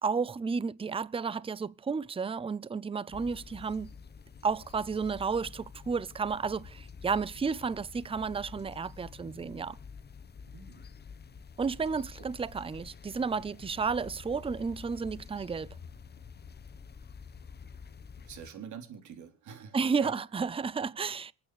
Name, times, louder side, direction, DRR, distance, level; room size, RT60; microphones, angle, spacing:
voice 1, 0.0-3.9 4.4-9.8 11.6-15.8 19.7-21.3, right 5 dB, 20° right, 0.6 m, -32 dB
sound 1, 3.1-18.5, left 5 dB, 35° left, 1.0 m, -48 dB
voice 2, 10.5-10.9 18.2-20.1, right 7 dB, 75° right, 3.8 m, -45 dB
27.0 x 9.1 x 3.2 m
cardioid pair, 90°, 30 cm